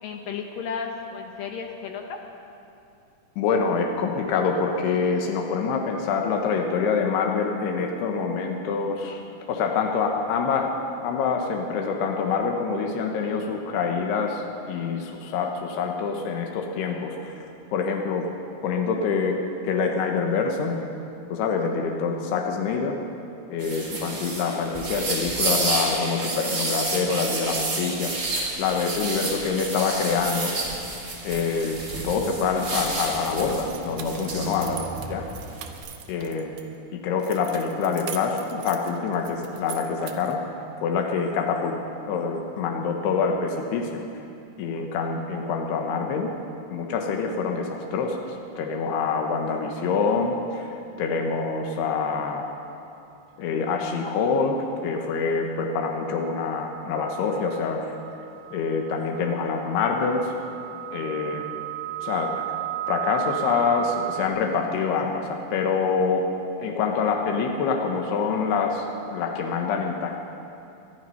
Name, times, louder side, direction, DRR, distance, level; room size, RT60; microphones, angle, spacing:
voice 1, 0.0-2.2, left 6 dB, 70° left, 3 dB, 2.6 m, -33 dB
voice 2, 3.4-9.2 9.5-10.7 11.0-17.5 17.7-18.3 18.6-20.8 21.3-23.0 23.5-28.1 28.6-30.5 31.2-31.8 32.0-35.2 36.1-36.5 36.9-40.4 40.8-41.8 42.1-44.2 44.6-46.3 46.7-52.5 53.4-54.6 54.8-58.0 58.5-60.3 60.9-61.5 62.0-62.5 62.9-66.3 66.6-70.2, left 5 dB, 90° left, 2 dB, 3.1 m, -26 dB
sound 1, 23.6-35.8, right 2 dB, 30° right, 2.5 m, -30 dB
sound 2, 32.6-36.6 37.2-40.4, right 10 dB, 70° right, 2.1 m, -41 dB
sound 3, 52.0-52.3 56.0-64.3, right 15 dB, 90° right, 2.6 m, -35 dB
20.0 x 12.5 x 5.5 m, 2.6 s
omnidirectional pair, 4.6 m